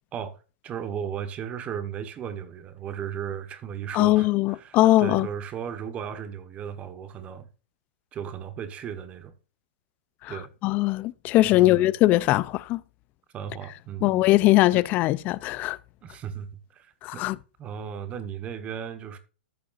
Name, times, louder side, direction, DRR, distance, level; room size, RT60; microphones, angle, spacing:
voice 1, 0.6-7.5 8.1-9.3 10.3-10.5 11.4-11.9 13.3-14.3 14.7-14.9 16.0-17.3 17.6-19.2, right 8 dB, 20° right, 1.3 m, -36 dB
voice 2, 3.9-5.3 10.2-10.3 10.6-12.8 14.0-15.8 17.0-17.4, left 17 dB, 30° left, 0.4 m, -21 dB
14.0 x 6.8 x 2.5 m
hypercardioid pair, 150°, 6 cm